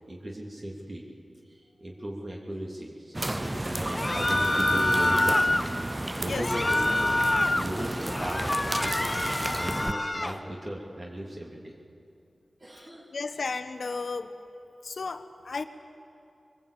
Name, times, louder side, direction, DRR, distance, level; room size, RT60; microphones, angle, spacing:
voice 1, 0.1-1.0 1.5-5.5 5.8-5.9 6.2-7.1 7.5-9.1 9.6-11.7 12.6-13.2, right 1 dB, 45° right, -3 dB, 3.1 m, -37 dB
sound 1, 3.1-9.9, right 1 dB, 20° right, 0.6 m, -32 dB
sound 2, 3.9-5.7 6.3-7.7 8.1-10.4, left 1 dB, 30° left, 1.2 m, -26 dB
voice 2, 6.2-6.7 13.1-14.3 14.8-15.6, left 4 dB, 75° left, 10 dB, 1.1 m, -34 dB
23.0 x 20.0 x 8.7 m, 2.6 s
wide cardioid pair, 65°, 0 cm